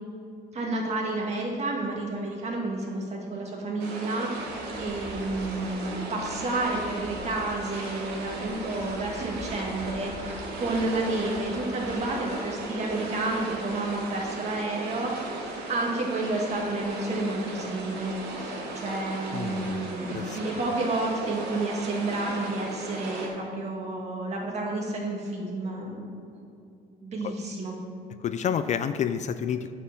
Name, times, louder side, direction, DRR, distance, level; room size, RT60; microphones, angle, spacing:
voice 1, 0.5-26.1 27.0-27.7, right 2 dB, 40° right, -1 dB, 2.1 m, -30 dB
sound 1, 3.8-23.3, right 2 dB, 85° right, 2.2 m, -37 dB
voice 2, 19.3-20.4 27.2-27.3 28.2-29.7, left 8 dB, 45° left, 11 dB, 0.4 m, -30 dB
9.0 x 4.4 x 7.1 m, 2.5 s
cardioid pair, 110°, 17 cm